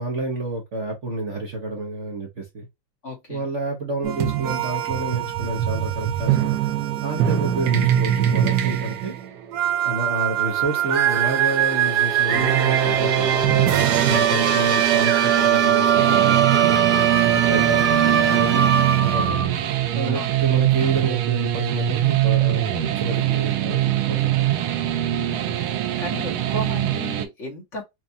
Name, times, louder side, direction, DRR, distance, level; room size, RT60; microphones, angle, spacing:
voice 1, 0.0-2.7 3.3-6.5 7.0-9.1 9.8-13.4 14.0-16.8 17.2-19.5 19.9-24.5, right 2 dB, 45° right, 1.0 m, -29 dB
voice 2, 3.0-3.4 7.2-7.4 13.9-14.4 20.1-20.4 25.1-27.8, left 2 dB, 40° left, 1.4 m, -35 dB
sound 1, 4.0-19.5, right 9 dB, 65° right, 1.2 m, -20 dB
sound 2, 16.0-27.3, right 13 dB, 90° right, 1.4 m, -23 dB
4.5 x 2.5 x 2.6 m
omnidirectional pair, 2.2 m